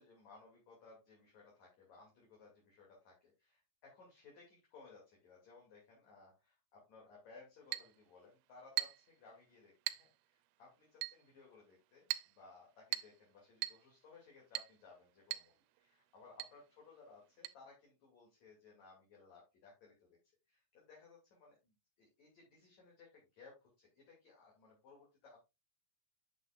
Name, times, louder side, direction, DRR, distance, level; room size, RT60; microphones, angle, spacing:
voice 1, 0.0-9.7 10.0-20.1 20.5-25.4, left 4 dB, 45° left, -2 dB, 3.2 m, -61 dB
Chink clink, 7.7-7.9 8.8-9.1 9.9-10.1 11.0-11.2 12.1-12.3 12.9-13.2 13.6-13.8 14.6-14.8 15.3-15.5 15.8-15.9 16.4-16.6 17.4-17.5, right 16 dB, 85° right, 3.1 m, -41 dB
9.2 x 7.9 x 2.4 m, 0.24 s
omnidirectional pair, 5.6 m